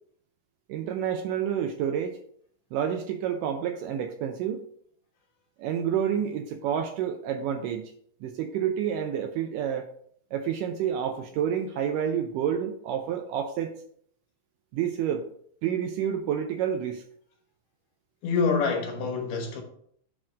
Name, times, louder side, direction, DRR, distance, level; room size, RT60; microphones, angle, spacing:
voice 1, 0.7-2.2 2.7-4.7 5.6-7.9 8.2-9.9 10.3-13.7 14.7-15.3 15.6-17.0, right 9 dB, 80° right, 2.0 m, -29 dB
voice 2, 18.2-19.6, left 5 dB, 70° left, 2.7 m, -26 dB
7.4 x 3.6 x 6.3 m
omnidirectional pair, 4.2 m